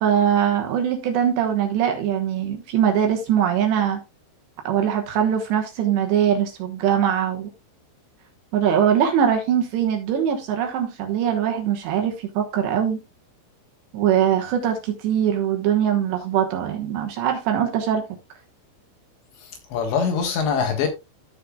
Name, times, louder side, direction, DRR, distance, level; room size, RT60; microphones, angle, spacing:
voice 1, 0.0-4.0 4.6-7.5 8.5-13.0 13.9-18.1, right 9 dB, 70° right, 3.0 m, -22 dB
voice 2, 19.4-20.9, left 6 dB, 65° left, 3.5 m, -23 dB
14.0 x 6.7 x 2.3 m
omnidirectional pair, 5.8 m